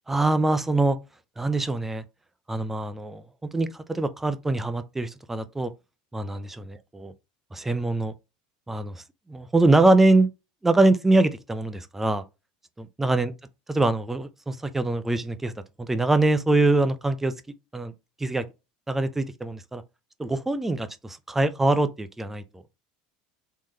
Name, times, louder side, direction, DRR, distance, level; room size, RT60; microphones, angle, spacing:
voice 1, 0.1-1.0 1.4-2.0 2.5-3.2 3.5-5.7 6.1-6.8 7.5-8.1 8.7-9.0 9.3-10.3 10.6-12.2 12.8-13.3 13.8-15.5 15.8-17.3 17.7-17.9 18.2-18.4 18.9-19.8 20.2-22.4, right 2 dB, 10° right, 0.5 m, -23 dB
3.7 x 3.1 x 2.7 m
supercardioid pair, 110°, 3 cm